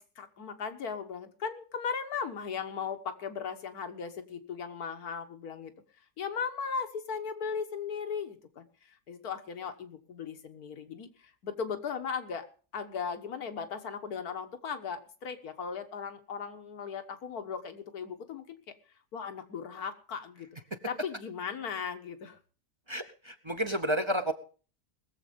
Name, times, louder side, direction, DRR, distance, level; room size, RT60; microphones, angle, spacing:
voice 1, 0.0-5.7 6.2-11.1 11.4-12.5 12.7-18.6 19.1-20.5 20.9-22.4, left 6 dB, 85° left, 8 dB, 1.8 m, -37 dB
voice 2, 22.9-24.3, equal, 25° right, 8 dB, 0.6 m, -31 dB
20.0 x 7.5 x 5.2 m, 0.39 s
omnidirectional pair, 1.6 m